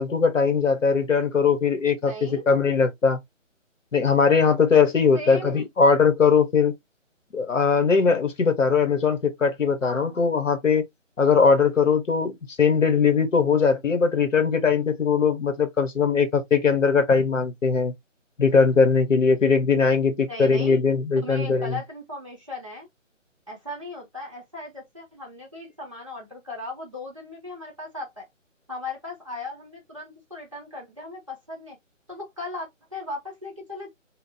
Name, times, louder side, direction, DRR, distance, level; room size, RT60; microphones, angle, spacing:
voice 1, 0.0-3.2 3.9-6.7 7.3-10.8 11.2-17.9 18.4-21.8, left 5 dB, 75° left, 0.9 m, -20 dB
voice 2, 2.0-2.5 5.1-5.6 9.8-10.2 20.3-20.8 21.2-22.9 23.5-28.3 28.7-31.8 32.1-33.9, left 2 dB, 25° right, 0.7 m, -37 dB
2.9 x 2.0 x 2.6 m
figure-of-eight pair, 175°, 39 cm